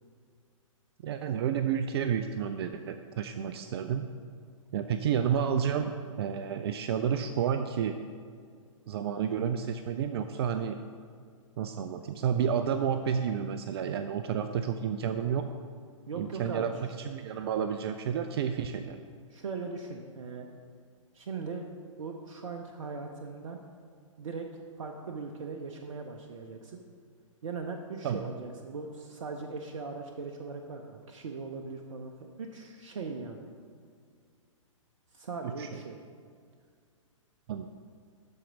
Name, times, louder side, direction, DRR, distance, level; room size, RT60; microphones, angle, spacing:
voice 1, 1.0-4.1 4.7-8.0 8.9-10.8 11.6-15.4 16.2-19.0 28.0-28.2 35.6-35.8 37.5-37.7, right 8 dB, 50° right, 8 dB, 0.5 m, -30 dB
voice 2, 16.1-16.7 19.3-20.5 21.1-21.7 22.0-23.6 24.2-24.5 24.8-26.8 27.4-33.4 35.1-36.0, right 4 dB, 70° right, 3 dB, 0.8 m, -39 dB
12.5 x 4.4 x 5.1 m, 2.1 s
hypercardioid pair, 120°, 17 cm